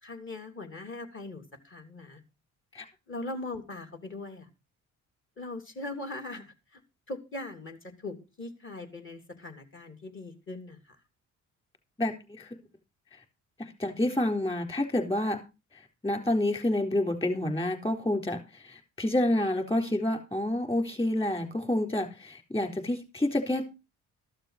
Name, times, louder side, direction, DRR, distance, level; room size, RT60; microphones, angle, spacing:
voice 1, 0.0-2.2 3.1-4.5 5.4-6.8 7.1-11.0, left 2 dB, 40° left, 4 dB, 3.3 m, -40 dB
voice 2, 12.0-12.5 13.6-15.4 15.7-23.6, left 1 dB, 20° left, 5 dB, 3.9 m, -29 dB
14.0 x 6.7 x 5.8 m, 0.29 s
cardioid pair, 90°, 30 cm